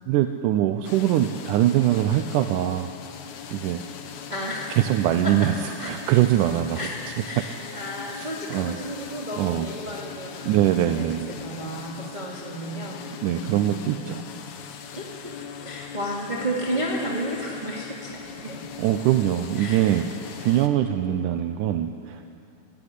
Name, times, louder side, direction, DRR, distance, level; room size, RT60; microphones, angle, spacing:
voice 1, 0.1-2.9 3.5-3.8 4.8-5.5 5.8-6.9 8.2-8.7 9.4-9.7 10.5-11.3 13.2-14.2 18.8-20.1 20.4-22.4, right 12 dB, 85° right, 8 dB, 2.3 m, -22 dB
sound 1, 0.8-20.7, left 7 dB, 70° left, 2.6 m, -40 dB
voice 2, 4.3-4.8 5.2-5.3 5.8-5.9 6.7-6.9 7.2-14.2 14.9-15.3 15.6-18.6 19.6-19.9, right 1 dB, 15° right, -3 dB, 2.2 m, -33 dB
26.0 x 15.0 x 9.9 m, 2.6 s
omnidirectional pair, 3.7 m